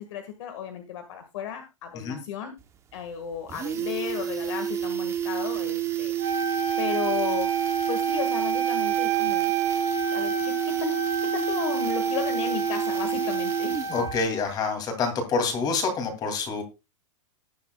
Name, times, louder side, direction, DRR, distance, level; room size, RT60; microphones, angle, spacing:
voice 1, 0.0-2.5 2.9-6.1 6.8-7.5 7.9-9.5 10.1-13.8, left 9 dB, 60° left, 7 dB, 1.8 m, -34 dB
sound 1, 2.6-2.7 3.0-3.1 3.4-14.2 14.5-14.6, right 11 dB, 15° right, 0.9 m, -29 dB
Wind instrument woodwind instrument, 6.2-14.5, right 5 dB, 35° right, 2.7 m, -30 dB
voice 2, 13.9-16.6, left 4 dB, 25° left, 6 dB, 2.7 m, -27 dB
19.0 x 7.2 x 2.3 m, 0.25 s
supercardioid pair, 160°, 17 cm